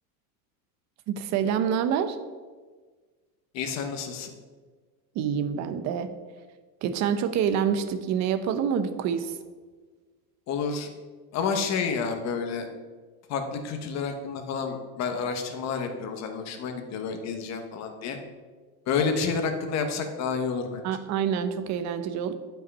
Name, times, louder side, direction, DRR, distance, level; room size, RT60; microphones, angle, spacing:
voice 1, 1.1-2.2 5.1-6.1 6.8-9.4 20.8-22.3, right 8 dB, 40° right, 11 dB, 0.8 m, -27 dB
voice 2, 3.5-4.3 10.5-10.9 11.3-12.7 13.3-18.2 18.9-20.8, left 5 dB, 35° left, 6 dB, 1.2 m, -29 dB
11.0 x 5.8 x 5.4 m, 1.4 s
supercardioid pair, 155°, 45 cm